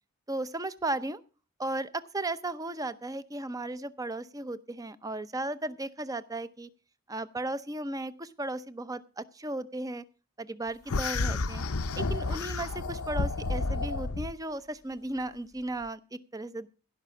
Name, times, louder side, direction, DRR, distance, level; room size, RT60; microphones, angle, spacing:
voice 1, 0.3-1.2 1.6-6.7 7.1-10.0 10.4-11.6 11.9-16.7, right 2 dB, 15° right, 14 dB, 0.6 m, -35 dB
sound 1, 10.9-14.3, left 3 dB, 85° left, 0.7 m, -31 dB
16.0 x 5.7 x 7.0 m, 0.35 s
head